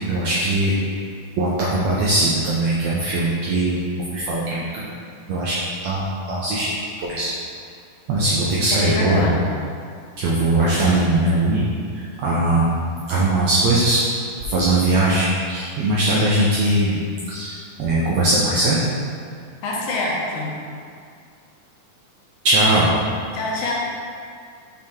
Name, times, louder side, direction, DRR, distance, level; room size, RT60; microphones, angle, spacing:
voice 1, 0.1-0.7 1.4-5.0 5.3-5.5 5.8-7.3 8.1-9.2 10.2-11.6 12.2-12.7 13.1-14.0 14.5-17.0 17.3-18.8 22.4-22.9, right 2 dB, 85° right, -6 dB, 1.5 m, -20 dB
voice 2, 8.7-9.5 10.4-11.0 19.6-20.6 23.3-23.7, left 2 dB, 85° left, -4 dB, 2.8 m, -26 dB
6.4 x 4.4 x 3.6 m, 2.3 s
omnidirectional pair, 3.9 m